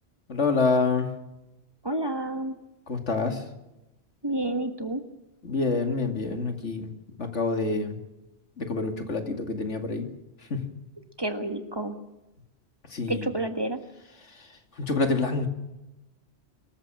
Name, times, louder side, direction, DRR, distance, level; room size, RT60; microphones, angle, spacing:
voice 1, 0.3-1.1 2.9-3.4 5.4-6.9 7.2-8.0 8.6-10.1 10.5-10.6 12.9-13.3 14.4-14.5 14.8-15.5, left 4 dB, 90° left, 6 dB, 2.8 m, -27 dB
voice 2, 1.8-2.6 4.2-5.0 11.2-12.0 13.1-13.8, right 2 dB, 20° right, 8 dB, 1.6 m, -29 dB
25.0 x 14.5 x 7.7 m, 0.96 s
omnidirectional pair, 1.2 m